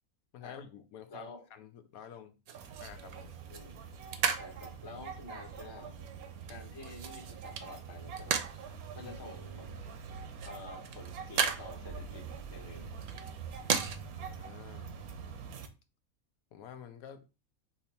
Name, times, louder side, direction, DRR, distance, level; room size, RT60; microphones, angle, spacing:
voice 1, 0.3-2.4 2.8-3.3 9.0-9.1 14.2-15.0 16.5-17.3, left 8 dB, 80° left, 1.1 m, -49 dB
voice 2, 1.1-1.4 3.5-3.7 4.4-6.0 6.5-8.4 8.9-9.7 10.4-12.9 13.4-13.5, left 2 dB, 20° left, 0.9 m, -49 dB
sound 1, 2.5-14.0, right 7 dB, 70° right, 1.0 m, -38 dB
sound 2, 2.5-15.7, right 6 dB, 90° right, 1.2 m, -45 dB
4.4 x 2.9 x 4.2 m
omnidirectional pair, 1.5 m